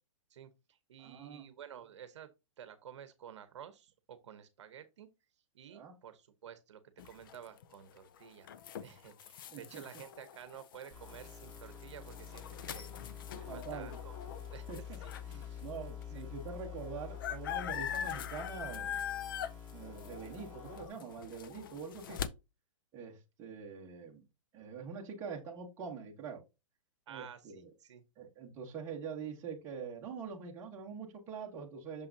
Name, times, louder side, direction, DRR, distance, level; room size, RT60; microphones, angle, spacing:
voice 1, 0.3-2.3 2.6-5.1 5.5-8.5 8.8-12.9 13.3-14.7 15.0-15.6 16.1-16.2 27.1-28.0, right 9 dB, 55° right, 1.0 m, -52 dB
voice 2, 1.0-1.4 5.7-5.9 9.5-9.8 13.3-14.0 14.7-15.0 15.3-19.0 19.7-22.2 22.9-24.3 24.5-26.4 27.1-27.7 28.2-32.1, right 5 dB, 15° right, 1.2 m, -44 dB
sound 1, 7.0-15.5 16.0-16.1 16.3-22.3, left 9 dB, 40° left, 0.4 m, -43 dB
sound 2, 10.9-20.9, left 8 dB, 15° left, 2.4 m, -47 dB
6.5 x 5.5 x 2.7 m
hypercardioid pair, 170°, 17 cm